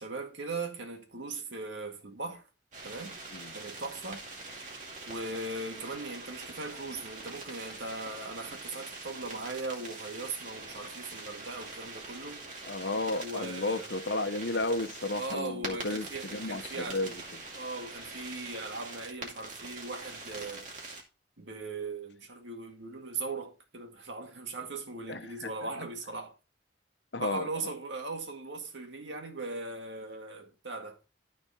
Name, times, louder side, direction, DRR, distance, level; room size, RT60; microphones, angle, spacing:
voice 1, 0.0-2.4 2.8-3.2 3.5-4.2 5.1-12.5 13.2-13.9 15.2-17.2 17.6-20.7 21.4-26.4 27.1-31.0, right 3 dB, 75° right, 1.9 m, -39 dB
sound 1, 2.7-21.0, right 3 dB, 40° right, 2.3 m, -44 dB
voice 2, 12.7-17.1 25.1-25.7 27.1-27.7, left 2 dB, 70° left, 1.0 m, -33 dB
13.0 x 4.4 x 4.2 m
head